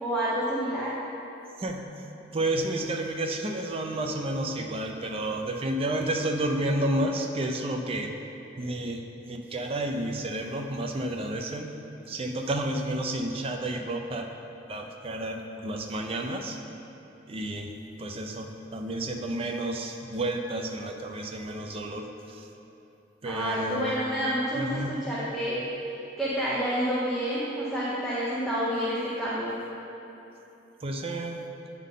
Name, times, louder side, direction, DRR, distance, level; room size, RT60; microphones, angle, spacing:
voice 1, 0.0-0.9 23.2-25.6 26.2-29.6, equal, ahead, -10 dB, 0.8 m, -29 dB
voice 2, 2.3-8.1 8.6-11.7 12.1-14.3 14.7-16.6 17.3-17.7 18.0-22.5 23.2-24.0 24.5-25.0 28.7-29.7 30.8-31.5, right 1 dB, 30° right, 3 dB, 0.5 m, -31 dB
9.3 x 3.6 x 3.8 m, 3.0 s
head